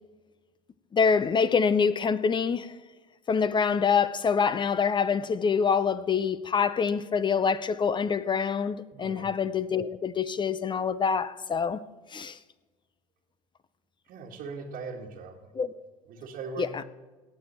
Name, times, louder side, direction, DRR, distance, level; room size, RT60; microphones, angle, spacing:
voice 1, 0.9-2.7 3.3-11.8 12.1-12.4 15.5-15.7 16.6-16.8, left 6 dB, 25° left, 0.5 m, -25 dB
voice 2, 8.9-9.3 14.1-15.5 16.1-16.8, right 4 dB, 50° right, 1.6 m, -40 dB
17.5 x 6.8 x 4.3 m
hypercardioid pair, 75°, 18 cm